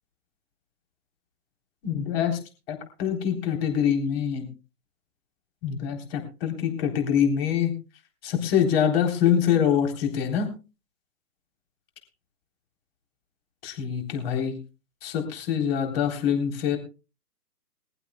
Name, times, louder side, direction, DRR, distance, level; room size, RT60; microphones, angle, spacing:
voice 1, 1.8-2.4 2.7-4.5 5.6-7.7 8.2-10.5 13.6-14.5 15.0-16.8, left 8 dB, 35° left, 4 dB, 3.7 m, -25 dB
21.5 x 15.0 x 2.3 m, 0.32 s
figure-of-eight pair, 135°, 49 cm